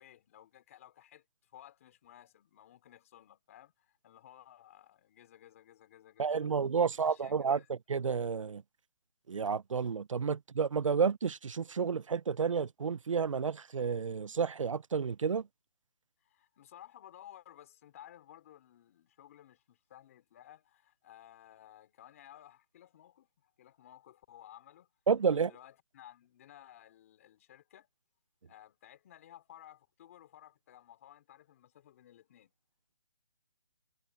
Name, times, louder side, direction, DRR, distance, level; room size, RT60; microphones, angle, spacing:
voice 1, 0.0-7.7 16.2-24.9 25.3-27.9 28.4-32.5, left 12 dB, 30° left, 4.3 m, -56 dB
voice 2, 6.2-8.6 9.3-15.4 25.1-25.5, right 6 dB, 85° right, 0.7 m, -31 dB
hypercardioid pair, 170°, 16 cm